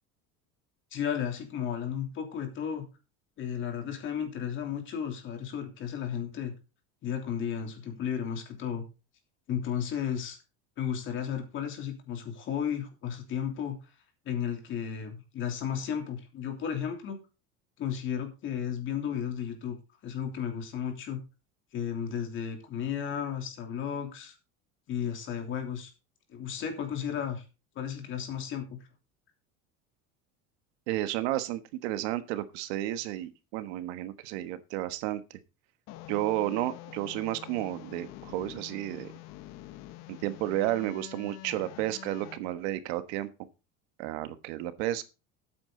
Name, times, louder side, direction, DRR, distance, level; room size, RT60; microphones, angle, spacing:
voice 1, 0.9-2.9 3.4-6.5 7.0-8.8 9.5-10.4 10.8-13.8 14.2-17.2 17.8-19.7 20.0-21.2 21.7-24.3 24.9-25.9 26.3-27.4 27.7-28.8, left 8 dB, 40° left, 4 dB, 3.1 m, -34 dB
voice 2, 30.9-35.4 36.1-39.1 40.1-43.3 44.0-45.0, right 14 dB, 85° right, 12 dB, 1.4 m, -32 dB
sound 1, 35.9-42.4, left 16 dB, 55° left, 1.1 m, -46 dB
12.0 x 8.7 x 3.9 m, 0.30 s
cardioid pair, 170°, 32 cm